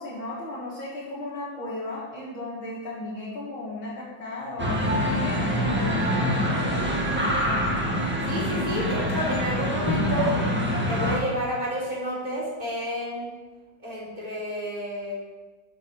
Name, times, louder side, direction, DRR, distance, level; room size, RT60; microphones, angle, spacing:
voice 1, 0.0-7.2, left 2 dB, 85° left, -6 dB, 2.8 m, -35 dB
sound 1, 4.6-11.2, equal, 5° right, 1.4 m, -25 dB
voice 2, 8.2-10.4 10.9-13.3 13.8-15.1, equal, 20° right, -6 dB, 4.1 m, -30 dB
11.0 x 6.5 x 6.4 m, 1.2 s
omnidirectional pair, 2.1 m